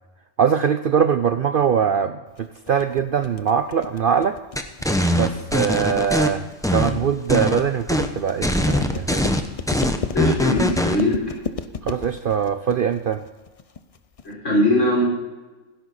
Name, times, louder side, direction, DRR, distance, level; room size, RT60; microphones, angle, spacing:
voice 1, 0.4-4.4 5.1-9.4 11.8-13.2, right 7 dB, 60° right, 10 dB, 0.6 m, -22 dB
sound 1, 2.4-14.3, left 5 dB, 40° left, 0.5 m, -34 dB
sound 2, 4.6-6.3 6.6-7.6 7.9-8.1 8.4-11.0, left 1 dB, 5° left, 0.7 m, -21 dB
voice 2, 10.1-11.4 14.2-15.0, left 1 dB, 70° left, -4 dB, 5.3 m, -20 dB
17.0 x 11.0 x 4.2 m, 1.2 s
omnidirectional pair, 1.3 m